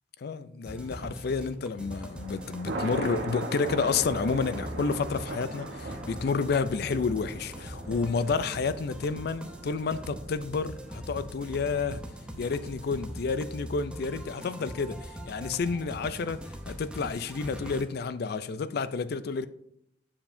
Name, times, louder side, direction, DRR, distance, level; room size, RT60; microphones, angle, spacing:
voice 1, 0.2-12.0 12.4-19.5, left 4 dB, 60° left, 0.4 m, -30 dB
sound 1, 0.6-17.8, equal, 5° right, 0.7 m, -42 dB
Thunder, 1.8-13.1, right 1 dB, 70° right, 1.0 m, -40 dB
7.4 x 7.0 x 2.6 m
head